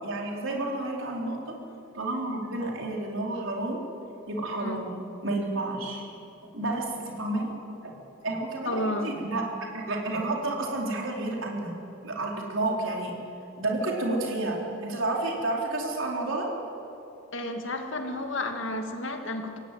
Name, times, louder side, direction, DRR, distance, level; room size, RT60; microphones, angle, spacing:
voice 1, 0.0-1.4 1.9-3.8 4.3-6.1 6.5-7.5 7.8-7.9 8.2-9.4 9.7-11.8 12.0-13.1 13.6-16.5, right 2 dB, 70° right, -1 dB, 4.2 m, -30 dB
voice 2, 8.6-9.1 17.3-19.6, left 1 dB, 65° left, 4 dB, 2.2 m, -31 dB
23.0 x 17.0 x 9.3 m, 2.9 s
head